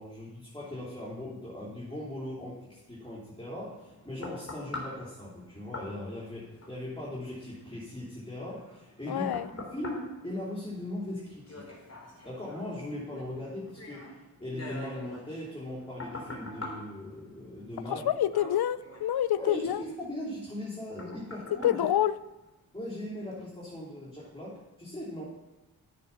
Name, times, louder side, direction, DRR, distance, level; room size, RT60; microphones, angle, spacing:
voice 1, 0.0-11.7 12.2-14.1 14.4-18.0 19.4-21.9 22.7-25.2, left 1 dB, 15° left, -7 dB, 3.6 m, -39 dB
sound 1, 3.5-22.8 23.3-23.4, left 2 dB, 40° left, 3.6 m, -46 dB
voice 2, 9.1-9.5 17.9-19.8 21.5-22.2, left 11 dB, 75° left, 16 dB, 0.6 m, -27 dB
9.5 x 8.6 x 5.8 m, 1.1 s
cardioid pair, 60°, 38 cm